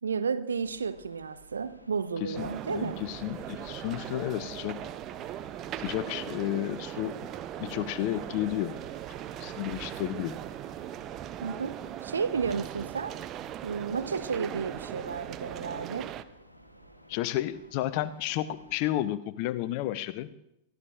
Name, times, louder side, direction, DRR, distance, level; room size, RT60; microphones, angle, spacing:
voice 1, 0.0-3.0 11.4-13.2 13.6-16.1, right 6 dB, 70° right, 0.7 m, -32 dB
sound 1, 0.6-18.9, equal, 90° left, 1.2 m, -55 dB
voice 2, 2.2-4.9 5.8-7.2 7.6-8.8 9.4-10.3 17.1-20.3, left 14 dB, 45° left, 0.6 m, -32 dB
sound 2, 2.3-16.2, right 11 dB, 35° right, 0.5 m, -39 dB
22.0 x 15.0 x 2.5 m
figure-of-eight pair, 90°, 0 cm